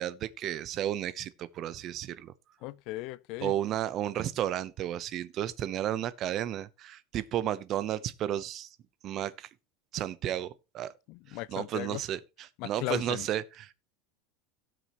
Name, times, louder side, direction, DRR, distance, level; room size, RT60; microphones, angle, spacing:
voice 1, 0.0-2.3 3.4-8.7 9.0-9.5 9.9-10.9 11.5-12.2 12.6-13.7, right 11 dB, 35° right, 0.7 m, -33 dB
voice 2, 2.6-3.5 11.1-12.0 12.6-13.3, left 18 dB, 50° left, 0.5 m, -37 dB
17.5 x 6.1 x 3.0 m
supercardioid pair, 150°, 0 cm